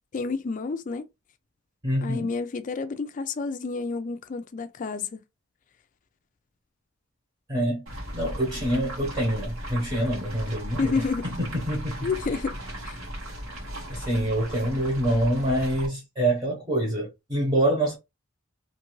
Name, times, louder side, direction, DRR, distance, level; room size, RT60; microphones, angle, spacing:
voice 1, 0.1-1.1 2.0-5.2 10.8-11.3 12.0-12.6 12.9-13.0, left 4 dB, 40° left, 0.3 m, -29 dB
voice 2, 1.8-2.3 7.5-7.8 8.1-11.0 11.3-12.1 13.9-17.9, right 1 dB, 20° right, 0.9 m, -26 dB
sound 1, 7.9-15.9, right 1 dB, 80° right, 1.2 m, -37 dB
2.6 x 2.4 x 3.0 m
head